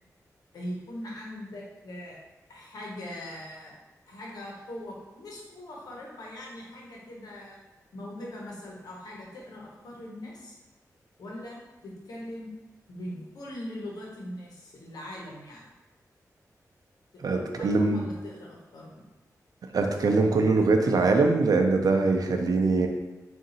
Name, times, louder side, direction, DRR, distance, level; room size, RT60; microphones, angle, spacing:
voice 1, 0.5-2.2 2.5-3.7 4.1-7.6 7.9-10.6 11.2-12.5 12.9-15.6 17.1-19.0, left 1 dB, 85° left, -3 dB, 1.0 m, -41 dB
voice 2, 17.2-18.1 19.7-22.9, right 3 dB, 75° right, 4 dB, 0.5 m, -23 dB
3.7 x 2.5 x 4.1 m, 1.1 s
cardioid pair, 60°, 6 cm